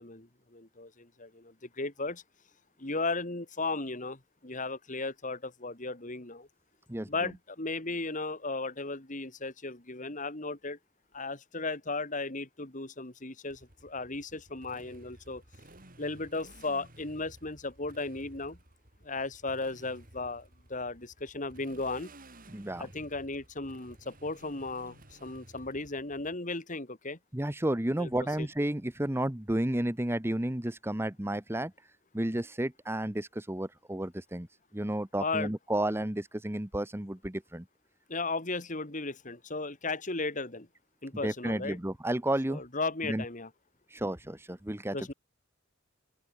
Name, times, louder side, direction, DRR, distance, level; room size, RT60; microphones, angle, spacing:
voice 1, 0.0-2.2 2.8-6.5 7.1-10.8 11.1-15.4 16.0-18.6 19.0-22.1 22.8-27.2 28.0-28.1 28.4-28.5 35.2-35.5 38.1-40.7 41.0-41.8 42.5-43.5 44.9-45.1, left 3 dB, 40° left, 2.7 m, -36 dB
voice 2, 6.9-7.3 22.5-22.9 27.3-31.7 32.1-34.5 34.7-37.6 41.2-42.6 43.0-43.2 43.9-45.0, right 1 dB, 10° right, 1.1 m, -32 dB
Motorcycle, 13.5-26.3, right 1 dB, 45° right, 6.1 m, -55 dB
open air
head